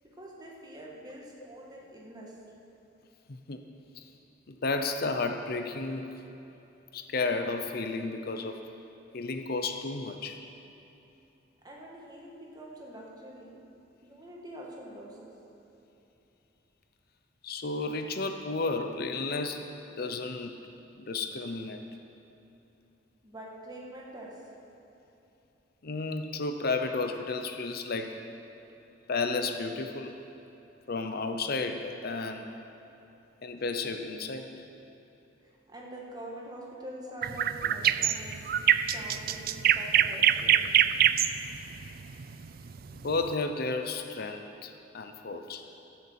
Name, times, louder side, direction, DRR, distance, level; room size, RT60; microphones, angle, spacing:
voice 1, 0.0-2.4 11.6-13.6 14.0-15.3 23.2-24.6 35.4-38.4 38.9-40.8, right 1 dB, 20° right, -3 dB, 2.0 m, -45 dB
voice 2, 3.3-3.6 4.0-4.1 4.5-6.2 6.9-8.6 9.1-10.4 17.4-19.6 20.0-20.6 21.0-21.8 25.8-28.2 29.1-30.2 30.9-32.5 33.4-34.6 42.9-45.6, left 3 dB, 55° left, 6 dB, 0.7 m, -32 dB
sound 1, 37.2-43.3, right 10 dB, 55° right, 0.4 m, -24 dB
15.0 x 7.1 x 7.5 m, 3.0 s
head